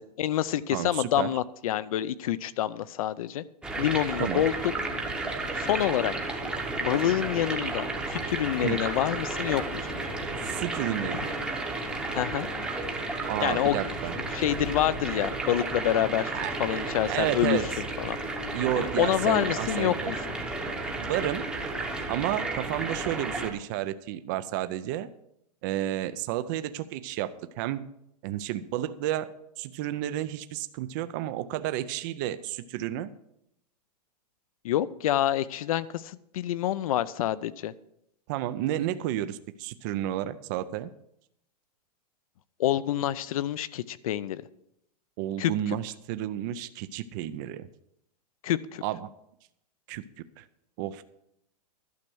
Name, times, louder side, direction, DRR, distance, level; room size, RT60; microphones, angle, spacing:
voice 1, 0.2-3.4 3.8-4.5 5.5-6.1 6.8-9.6 12.1-12.5 13.4-13.8 14.3-16.3 16.6-17.6 18.0-18.2 18.8-20.2 34.6-37.7 42.6-44.4 45.4-45.8 48.4-48.8, left 12 dB, 60° left, 17 dB, 0.6 m, -27 dB
voice 2, 0.7-1.3 4.2-4.4 8.6-8.8 10.4-11.4 13.3-14.1 16.3-16.5 17.1-17.7 18.5-20.1 20.9-21.5 22.1-25.1 25.6-27.3 27.6-27.8 28.2-33.1 38.3-40.9 45.2-47.7 48.8-49.1 49.9-50.0 50.4-50.5 50.8-51.0, right 13 dB, 30° right, 13 dB, 0.4 m, -31 dB
sound 1, 3.6-23.5, right 2 dB, 5° right, 0.9 m, -32 dB
12.0 x 6.6 x 6.2 m, 0.79 s
supercardioid pair, 165°, 21 cm